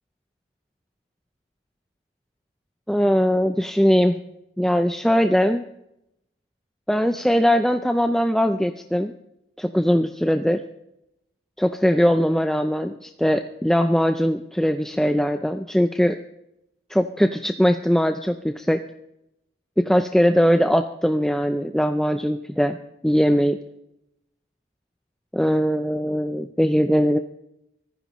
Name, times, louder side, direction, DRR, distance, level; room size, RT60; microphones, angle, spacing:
voice 1, 2.9-4.2 4.6-5.6 6.9-9.1 9.6-10.6 11.6-16.2 16.9-18.8 19.8-22.8 23.0-23.6 25.3-27.2, equal, 5° left, 6 dB, 0.5 m, -20 dB
24.5 x 15.0 x 3.1 m, 0.84 s
head